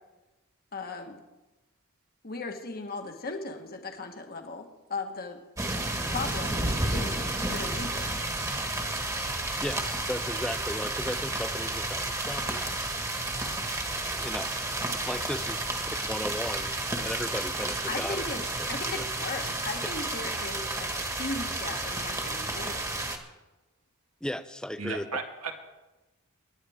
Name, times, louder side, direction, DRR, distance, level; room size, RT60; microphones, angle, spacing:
voice 1, 0.7-1.2 2.2-5.4 6.1-8.2 17.9-18.4 18.7-23.1, left 3 dB, 45° left, 5 dB, 1.4 m, -37 dB
sound 1, 5.6-23.2, right 2 dB, 15° right, 1.5 m, -31 dB
voice 2, 9.6-12.6 14.2-14.5 15.1-15.6 16.0-16.8 17.0-18.3 18.6-19.0 24.2-25.1, left 1 dB, 5° left, 11 dB, 0.5 m, -35 dB
voice 3, 24.8-25.5, right 4 dB, 85° right, 3 dB, 1.8 m, -35 dB
24.5 x 10.5 x 3.6 m, 1.1 s
head